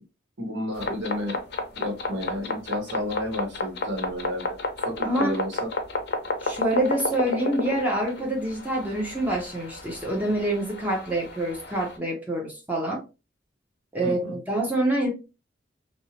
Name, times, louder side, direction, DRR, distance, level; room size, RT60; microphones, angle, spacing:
voice 1, 0.4-1.4 1.8-4.6 4.8-5.6 14.0-14.4, left 1 dB, 85° right, 1.0 m, -31 dB
sound 1, 0.7-12.0, left 2 dB, 60° left, 0.6 m, -32 dB
voice 2, 5.0-5.4 6.4-13.0 13.9-15.1, right 1 dB, 10° right, 0.6 m, -26 dB
2.6 x 2.0 x 2.7 m
head